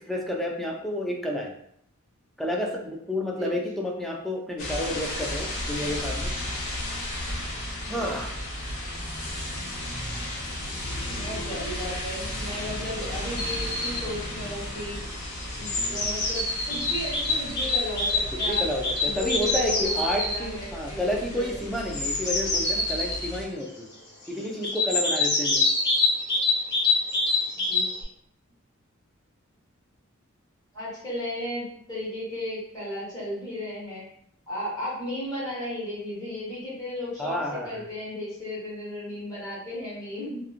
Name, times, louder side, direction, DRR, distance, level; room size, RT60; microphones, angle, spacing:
voice 1, 0.1-1.5 2.4-6.3 7.9-8.4 15.7-16.3 18.5-23.9 24.3-25.7 37.2-37.8, left 1 dB, ahead, 0 dB, 0.4 m, -30 dB
sound 1, 4.6-23.5, left 1 dB, 85° left, 1.1 m, -34 dB
voice 2, 7.8-8.1 11.0-15.0 15.5-18.6 19.0-21.5 27.6-27.9 30.7-34.0 34.5-40.4, left 1 dB, 20° left, -9 dB, 1.2 m, -35 dB
sound 2, 13.4-14.0 15.1-20.4 21.7-23.3 24.6-28.0, left 3 dB, 55° left, 0.8 m, -26 dB
2.9 x 2.5 x 2.4 m, 0.71 s
head